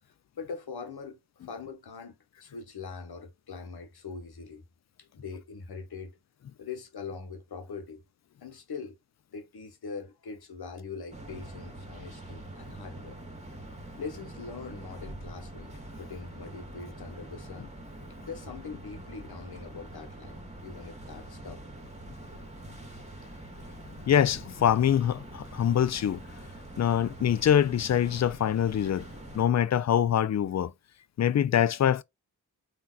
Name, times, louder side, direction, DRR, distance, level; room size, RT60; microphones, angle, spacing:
voice 1, 0.0-4.6 5.0-6.2 6.6-8.0 8.4-9.0 9.3-13.2 14.0-15.7 16.0-17.7 18.2-21.6, left 5 dB, 65° left, 1.2 m, -42 dB
sound 1, 11.1-29.4, right 1 dB, 15° right, 1.8 m, -44 dB
voice 2, 24.1-26.2 26.8-29.1 29.3-30.7 31.2-32.0, left 9 dB, 45° left, 0.4 m, -24 dB
3.7 x 2.8 x 2.4 m
cardioid pair, 40°, 40 cm